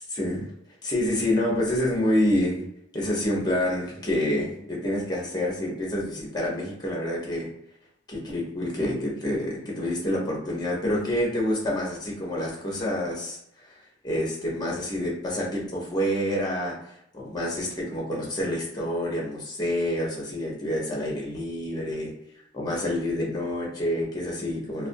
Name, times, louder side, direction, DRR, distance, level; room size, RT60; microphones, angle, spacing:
voice 1, 0.1-0.5 0.8-2.7 2.9-7.5 8.1-13.4 14.0-16.7 17.1-22.1 22.5-24.9, left 1 dB, 20° left, -3 dB, 0.7 m, -27 dB
2.4 x 2.2 x 2.5 m, 0.77 s
head